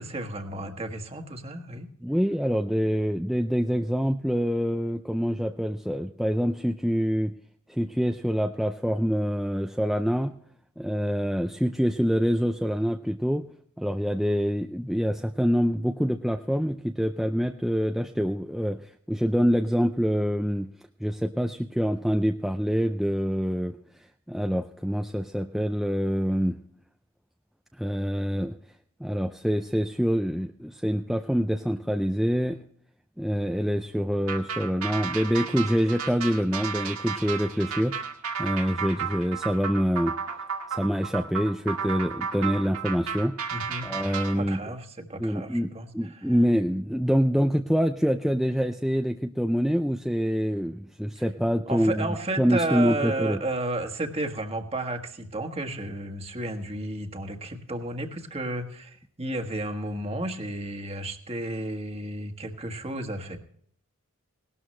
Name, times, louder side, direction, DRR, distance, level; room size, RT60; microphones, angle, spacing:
voice 1, 0.0-1.9 43.5-43.9 44.4-46.2 51.1-51.2 51.7-63.4, right 1 dB, 25° right, 5 dB, 1.5 m, -32 dB
voice 2, 2.0-7.3 7.7-10.3 10.8-13.4 13.8-20.7 21.0-26.6 27.8-28.6 29.0-32.6 33.2-38.0 38.4-40.1 40.7-43.4 43.8-44.6 45.2-52.1 52.4-53.4, equal, ahead, 5 dB, 0.4 m, -26 dB
sound 1, 34.3-44.3, right 6 dB, 85° right, 1.9 m, -33 dB
18.5 x 12.5 x 3.2 m, 0.63 s
head